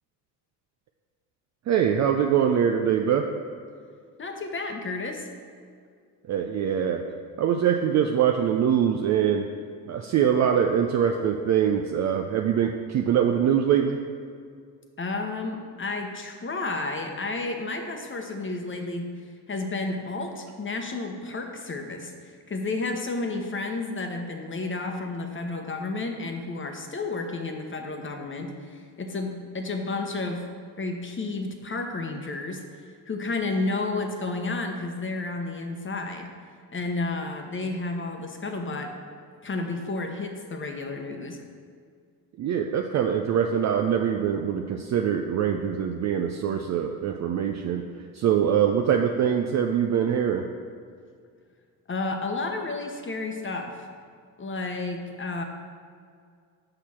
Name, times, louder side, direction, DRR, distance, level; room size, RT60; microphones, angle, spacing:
voice 1, 1.7-3.3 6.3-7.0 7.4-9.5 9.9-14.0 42.4-47.9 48.1-50.5, right 8 dB, 35° right, 4 dB, 0.5 m, -23 dB
voice 2, 4.2-5.3 15.0-19.1 19.5-30.4 30.8-32.6 33.1-36.3 36.7-38.9 39.4-41.4 51.9-53.9 54.4-55.4, left 3 dB, 25° left, 4 dB, 1.0 m, -31 dB
6.4 x 5.7 x 4.4 m, 2.2 s
hypercardioid pair, 50°, 48 cm